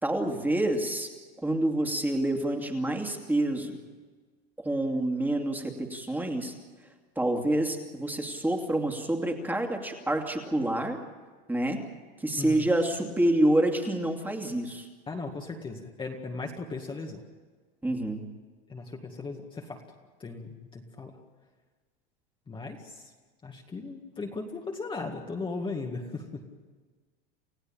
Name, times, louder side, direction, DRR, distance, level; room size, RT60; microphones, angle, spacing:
voice 1, 0.0-1.1 1.4-3.8 4.6-6.5 7.2-11.0 11.5-11.8 12.2-14.9 17.8-18.3, right 1 dB, 5° right, 3 dB, 2.6 m, -27 dB
voice 2, 12.4-12.7 15.1-17.2 18.7-19.8 20.2-21.1 22.5-23.1 23.4-26.4, left 3 dB, 15° left, 0 dB, 2.1 m, -37 dB
29.5 x 15.5 x 8.9 m, 1.4 s
supercardioid pair, 130°, 29 cm